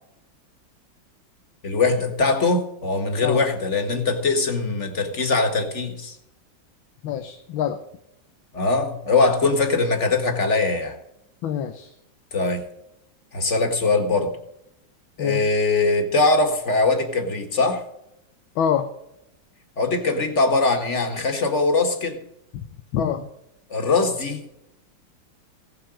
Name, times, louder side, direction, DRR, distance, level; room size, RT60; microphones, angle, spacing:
voice 1, 1.6-6.2 8.5-11.0 12.3-12.7 13.3-14.3 15.2-17.8 19.8-22.2 23.7-24.6, left 3 dB, 35° left, 6 dB, 1.8 m, -21 dB
voice 2, 7.0-7.8 11.4-11.9 15.2-15.5 18.6-18.9 22.5-22.6 22.9-23.3, left 8 dB, 90° left, 7 dB, 1.7 m, -25 dB
16.5 x 7.9 x 6.3 m, 0.81 s
omnidirectional pair, 2.2 m